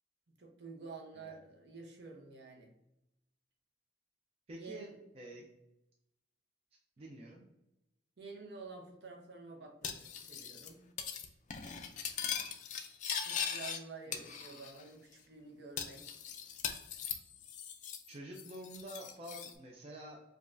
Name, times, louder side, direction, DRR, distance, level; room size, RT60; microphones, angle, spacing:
voice 1, 0.4-2.7 4.5-5.0 8.2-10.9 13.2-16.1, right 4 dB, 60° right, 2 dB, 0.7 m, -50 dB
voice 2, 4.5-4.9 5.1-5.4 7.0-7.5 14.1-14.3 18.1-20.2, right 1 dB, 30° right, 0 dB, 0.4 m, -48 dB
Cutlery silverware, 9.8-10.7 11.0-11.3 11.5-13.8 14.1-14.8 15.1-15.2 15.8-18.1 18.3-19.5, left 7 dB, 40° left, 0.3 m, -40 dB
4.9 x 2.3 x 2.5 m, 0.88 s
head